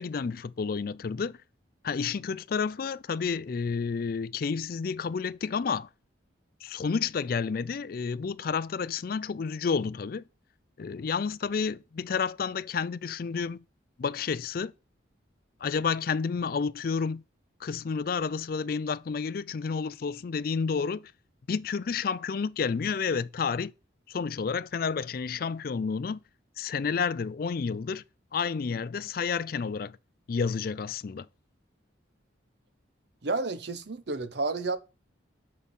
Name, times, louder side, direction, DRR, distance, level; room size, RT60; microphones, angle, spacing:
voice 1, 0.0-1.4 1.8-5.9 6.6-10.2 10.8-13.6 14.0-14.7 15.6-17.2 17.6-21.1 21.5-23.7 24.1-26.2 26.6-28.0 28.3-30.0 30.3-31.3, left 5 dB, 50° left, 0.4 m, -30 dB
voice 2, 33.2-34.8, right 3 dB, 60° right, 0.8 m, -31 dB
6.3 x 5.3 x 5.3 m
head